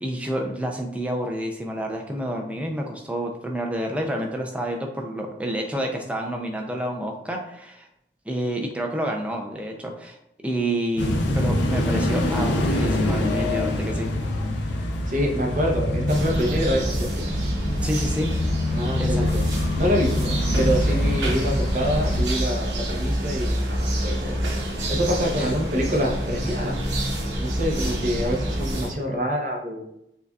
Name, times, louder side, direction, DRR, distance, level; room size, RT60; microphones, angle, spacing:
voice 1, 0.0-7.9 8.3-10.2 10.4-14.1 17.8-18.3 19.0-19.3 25.4-25.5, right 1 dB, 5° right, 1 dB, 0.4 m, -29 dB
sound 1, 11.0-22.2, left 1 dB, 85° left, 0.5 m, -25 dB
voice 2, 15.1-17.3 18.7-19.5 19.8-24.4 24.9-26.8 27.4-29.8, equal, 45° right, 0 dB, 0.7 m, -26 dB
sound 2, 16.1-28.9, right 1 dB, 90° right, 0.9 m, -27 dB
6.5 x 2.3 x 2.3 m, 0.80 s
head